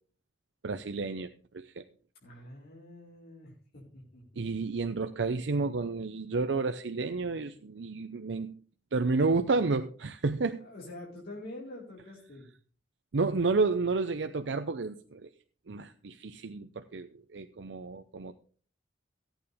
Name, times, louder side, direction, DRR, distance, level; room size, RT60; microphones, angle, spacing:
voice 1, 0.6-1.8 4.4-8.5 8.9-10.6 13.1-15.3 15.7-18.3, right 3 dB, 70° right, 8 dB, 0.6 m, -31 dB
voice 2, 2.2-4.4 7.5-7.7 10.6-12.5, left 1 dB, 60° left, -5 dB, 4.6 m, -46 dB
15.5 x 9.1 x 3.5 m, 0.42 s
head